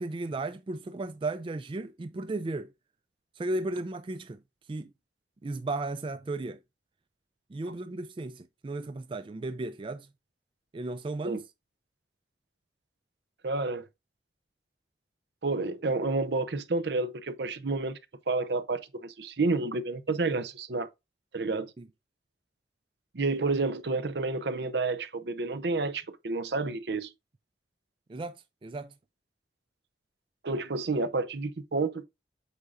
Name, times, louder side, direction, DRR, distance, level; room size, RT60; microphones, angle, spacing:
voice 1, 0.0-2.7 3.4-4.4 4.7-4.9 5.4-6.6 7.5-10.1 10.7-11.4 21.8-21.9 28.1-28.4 28.6-28.9, right 2 dB, 30° right, 0.3 m, -35 dB
voice 2, 13.4-13.9 15.4-18.0 18.3-20.9 21.3-21.7 23.1-27.1 30.4-32.0, right 3 dB, 70° right, 0.7 m, -30 dB
8.2 x 5.5 x 2.5 m
head